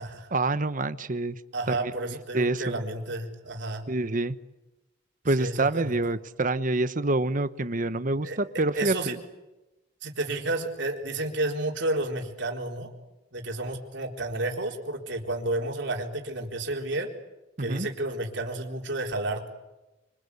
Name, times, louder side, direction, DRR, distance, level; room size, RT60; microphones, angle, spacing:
voice 1, 0.3-1.4 1.7-1.9 2.3-2.8 3.9-4.3 5.2-9.2 17.6-17.9, right 2 dB, 45° right, 12 dB, 1.1 m, -27 dB
voice 2, 1.5-3.9 5.4-5.9 8.2-9.2 10.0-12.9 13.3-17.1 17.6-19.5, right 2 dB, 65° right, 1 dB, 4.1 m, -31 dB
26.5 x 25.0 x 8.4 m, 1.0 s
head